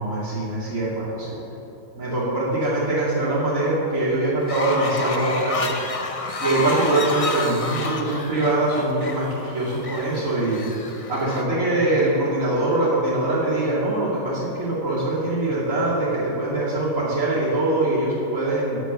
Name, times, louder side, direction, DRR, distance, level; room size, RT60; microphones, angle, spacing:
voice 1, 0.0-1.4 1.9-5.7 6.4-10.6 11.1-18.8, right 2 dB, 60° right, -12 dB, 3.0 m, -23 dB
Fowl, 4.4-11.4, left 3 dB, 60° left, 0.3 m, -29 dB
9.8 x 6.0 x 6.9 m, 2.9 s
omnidirectional pair, 1.6 m